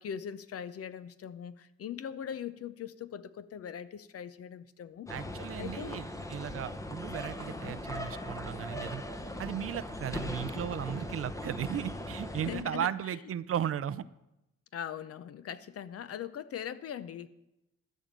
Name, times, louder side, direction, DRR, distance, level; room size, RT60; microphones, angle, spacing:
voice 1, 0.0-5.1 5.6-6.0 12.3-13.2 14.7-17.3, left 9 dB, 50° left, 14 dB, 0.6 m, -41 dB
sound 1, 5.1-12.6, left 1 dB, 10° left, 0.9 m, -39 dB
voice 2, 5.1-9.0 9.4-14.0, right 10 dB, 50° right, 16 dB, 0.6 m, -36 dB
12.5 x 5.3 x 7.5 m, 0.92 s
cardioid pair, 90°, 30 cm